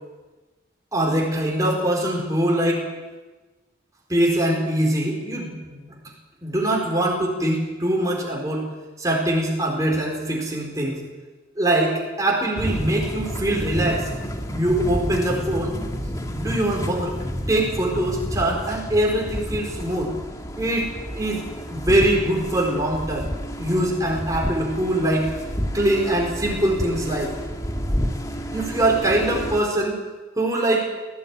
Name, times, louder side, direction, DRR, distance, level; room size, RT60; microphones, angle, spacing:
voice 1, 0.9-2.8 4.1-5.9 6.4-8.7 9.0-11.0 11.6-14.1 14.5-15.8 16.4-17.1 17.5-20.1 20.6-21.4 21.7-23.3 23.6-25.3 25.7-27.3 28.5-30.0 30.4-30.9, right 1 dB, 20° right, -2 dB, 4.4 m, -23 dB
sound 1, 12.6-29.6, equal, 20° left, 1.8 m, -30 dB
18.5 x 16.0 x 9.1 m, 1.2 s
head